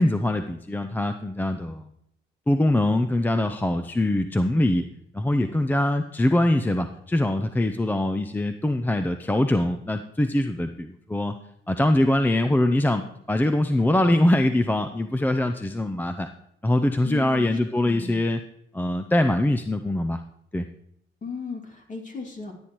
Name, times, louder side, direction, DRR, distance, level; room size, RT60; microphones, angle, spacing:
voice 1, 0.0-1.9 2.5-4.9 5.1-11.3 11.7-16.3 16.6-18.4 18.7-20.2 20.5-20.6, left 1 dB, 10° left, 7 dB, 0.5 m, -23 dB
voice 2, 17.0-18.2 21.2-22.5, left 5 dB, 40° left, 1 dB, 2.5 m, -36 dB
14.0 x 8.9 x 3.1 m, 0.73 s
cardioid pair, 90°, 20 cm